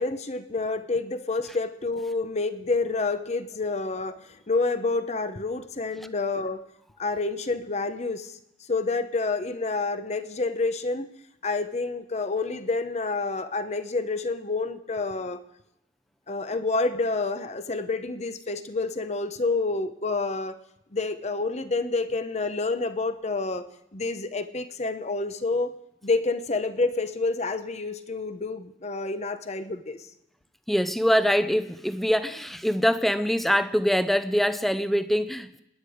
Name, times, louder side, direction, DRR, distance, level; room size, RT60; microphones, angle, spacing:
voice 1, 0.0-6.7 7.0-8.4 8.7-11.1 11.4-15.4 16.3-20.6 20.9-25.8 26.0-30.0, left 3 dB, 40° left, 10 dB, 0.9 m, -28 dB
voice 2, 30.7-35.6, equal, ahead, 12 dB, 0.7 m, -24 dB
27.0 x 10.5 x 5.0 m, 0.85 s
head